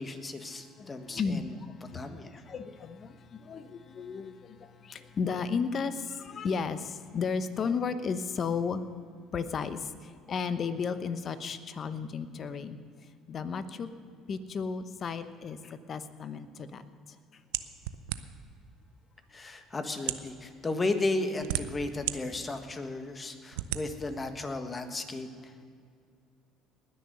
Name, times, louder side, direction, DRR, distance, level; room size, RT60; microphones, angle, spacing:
voice 1, 0.0-1.5 1.9-2.4 19.3-25.3, left 2 dB, 25° left, 7 dB, 1.5 m, -34 dB
voice 2, 0.8-1.5 1.9-2.1 2.5-4.6 4.8-8.8 9.3-9.8 10.3-12.8 13.3-13.9 14.3-15.6 15.9-16.8, left 5 dB, 45° left, 11 dB, 0.9 m, -33 dB
sound 1, 17.5-18.5 19.3-19.4 20.0-20.3 21.1-22.2 22.7-22.8 23.5-23.8, right 15 dB, 85° right, 0.5 m, -33 dB
19.5 x 6.5 x 6.8 m, 2.3 s
supercardioid pair, 75°, 0 cm